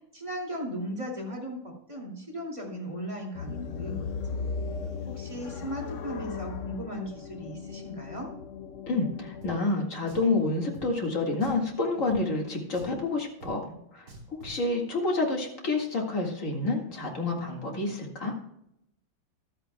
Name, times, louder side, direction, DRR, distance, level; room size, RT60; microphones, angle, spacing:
voice 1, 0.1-4.1 5.1-8.3, equal, 15° right, -2 dB, 2.5 m, -37 dB
sound 1, 3.3-9.6, left 5 dB, 75° left, 0.7 m, -37 dB
voice 2, 8.9-18.3, left 2 dB, 40° left, 0 dB, 2.2 m, -29 dB
Drum, 9.4-9.5 10.1-10.3 10.7-10.9 11.4-11.7 12.1-12.2 12.7-13.0 13.4-13.5 14.1-14.6, right 1 dB, 55° right, 3.5 m, -45 dB
14.0 x 12.5 x 2.3 m, 0.77 s
omnidirectional pair, 2.2 m